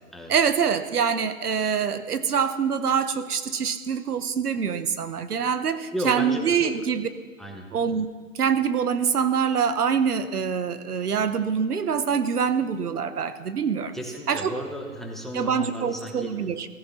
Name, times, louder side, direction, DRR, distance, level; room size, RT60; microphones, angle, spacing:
voice 1, 0.3-7.1 7.7-8.1 8.3-14.0 14.3-14.5 15.3-16.7, right 7 dB, 90° right, 12 dB, 1.3 m, -25 dB
voice 2, 5.9-6.9 7.4-7.7 13.9-16.3, equal, ahead, 1 dB, 1.0 m, -34 dB
17.5 x 14.0 x 5.8 m, 1.5 s
hypercardioid pair, 150°, 44 cm